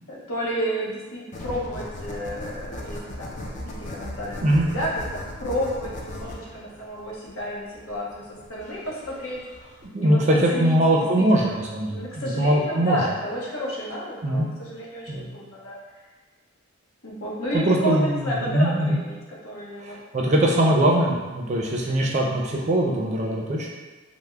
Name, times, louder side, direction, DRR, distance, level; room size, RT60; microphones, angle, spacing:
voice 1, 0.1-4.9 5.4-8.1 8.5-9.4 10.0-11.6 11.9-15.8 17.0-20.0, equal, 70° left, -4 dB, 0.8 m, -31 dB
sound 1, 1.3-9.8, left 1 dB, 35° left, 0.4 m, -37 dB
voice 2, 9.9-13.0 14.2-14.5 15.1-15.3 17.5-19.0 19.8-23.7, right 1 dB, 35° right, -1 dB, 0.4 m, -22 dB
3.4 x 2.1 x 3.3 m, 1.3 s
head